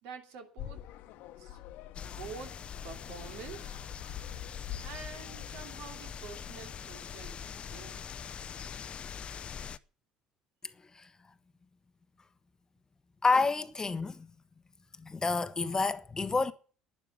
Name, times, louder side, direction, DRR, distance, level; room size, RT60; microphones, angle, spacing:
voice 1, 0.0-0.8 1.4-1.6 2.0-3.8 4.8-8.1, right 5 dB, 60° right, 2.8 m, -47 dB
sound 1, 0.6-5.8, left 11 dB, 60° left, 1.2 m, -46 dB
sound 2, 1.9-9.8, left 7 dB, 40° left, 0.7 m, -43 dB
voice 2, 13.2-14.1 15.0-16.5, left 3 dB, 20° left, 1.1 m, -28 dB
12.0 x 10.5 x 7.9 m
figure-of-eight pair, 55°, 3 cm